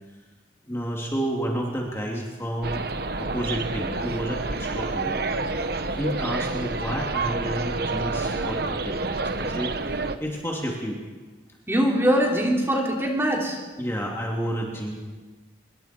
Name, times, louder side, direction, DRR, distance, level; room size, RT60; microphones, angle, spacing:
voice 1, 0.7-2.8 3.2-5.2 5.6-9.7 10.2-11.0 13.8-15.0, equal, 15° left, -2 dB, 2.8 m, -30 dB
sound 1, 2.6-10.2, right 3 dB, 55° right, 1.0 m, -28 dB
voice 2, 11.7-13.6, equal, 15° right, -1 dB, 3.1 m, -22 dB
25.5 x 23.0 x 4.5 m, 1.3 s
head